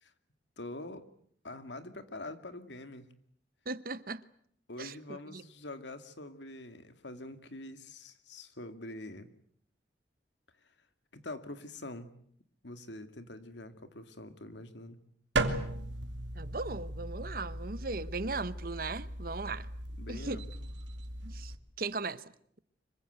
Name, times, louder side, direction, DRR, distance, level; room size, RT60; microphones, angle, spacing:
voice 1, 0.6-1.1 1.4-3.1 4.7-9.3 10.6-10.7 11.1-12.1 12.6-15.0 20.0-20.7, left 2 dB, 80° left, 2.3 m, -45 dB
voice 2, 3.6-4.2 4.8-5.0 5.3-5.4 16.3-19.7 20.1-20.4 21.2-22.2, right 3 dB, 55° right, 1.0 m, -37 dB
sound 1, 15.3-21.5, right 2 dB, 90° right, 2.4 m, -37 dB
25.5 x 24.0 x 8.0 m
head